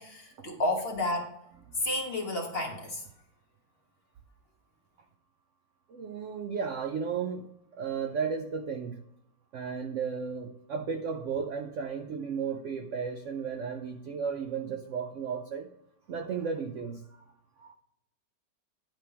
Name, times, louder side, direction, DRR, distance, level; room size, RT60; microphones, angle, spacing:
voice 1, 0.0-1.3 1.8-3.0, left 1 dB, 40° left, 1 dB, 1.2 m, -31 dB
voice 2, 5.9-7.5 7.8-9.0 9.5-15.7 16.1-17.2 17.6-17.7, right 6 dB, 75° right, 6 dB, 0.7 m, -34 dB
10.5 x 3.5 x 5.6 m, 0.81 s
omnidirectional pair, 1.9 m